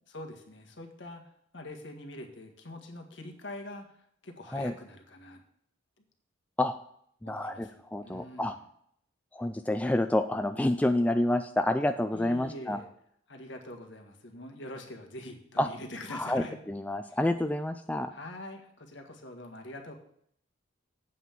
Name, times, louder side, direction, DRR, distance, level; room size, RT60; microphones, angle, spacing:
voice 1, 0.1-1.2 1.5-3.9 4.2-5.4 7.2-8.6 12.1-12.9 13.3-16.6 17.1-17.2 18.1-19.9, left 1 dB, 65° left, 4 dB, 1.7 m, -44 dB
voice 2, 7.2-8.6 9.3-12.8 15.6-15.7 16.1-18.1, left 1 dB, 5° left, 8 dB, 0.3 m, -28 dB
8.4 x 5.8 x 7.4 m, 0.69 s
head